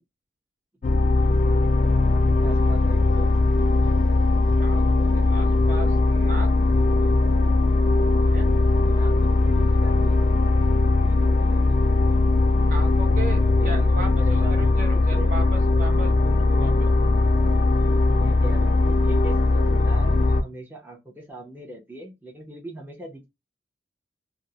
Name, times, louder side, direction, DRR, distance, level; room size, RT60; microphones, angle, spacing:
sound 1, 0.8-20.4, left 2 dB, 40° left, 0.3 m, -19 dB
voice 1, 0.9-3.3 8.8-10.2 11.0-11.8 13.6-15.5 18.1-23.3, right 2 dB, 10° right, 0.6 m, -40 dB
voice 2, 4.6-6.5 8.3-8.5 12.7-16.7 17.0-17.1, right 2 dB, 45° right, 0.8 m, -37 dB
2.4 x 2.0 x 2.7 m
head